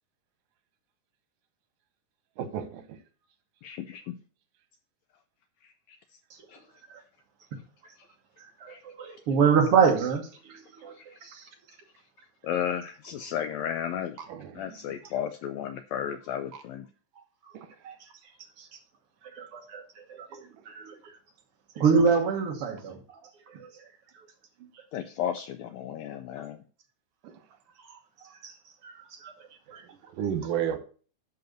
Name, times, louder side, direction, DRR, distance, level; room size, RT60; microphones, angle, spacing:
voice 1, 2.4-2.8 14.3-14.9 17.5-17.7 27.2-27.3 30.1-30.8, right 9 dB, 90° right, 2.7 m, -32 dB
voice 2, 3.6-4.2 5.6-6.0 6.5-6.6 8.7-8.8 10.9-11.2 12.4-14.2 14.5-16.9 24.9-26.6, left 9 dB, 80° left, 1.6 m, -34 dB
voice 3, 8.6-10.3 10.8-10.9 11.2-11.4 17.8-17.9 18.6-18.7 19.3-20.9 21.8-23.0 23.5-23.7 28.4-28.5 28.8-29.3 29.7-29.8, right 6 dB, 55° right, 1.8 m, -25 dB
11.5 x 4.1 x 6.5 m
omnidirectional pair, 3.7 m